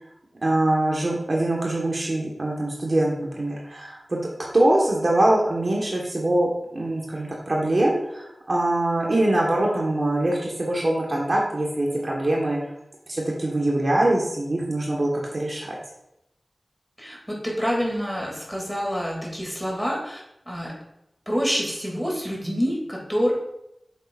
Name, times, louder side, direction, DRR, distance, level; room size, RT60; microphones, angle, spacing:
voice 1, 0.4-4.2 4.5-12.6 13.1-15.8, right 1 dB, 50° right, -3 dB, 1.5 m, -23 dB
voice 2, 17.0-20.2 20.5-20.7 21.3-23.3, equal, ahead, -2 dB, 2.7 m, -27 dB
8.8 x 7.1 x 2.6 m, 0.84 s
wide cardioid pair, 80°, 0 cm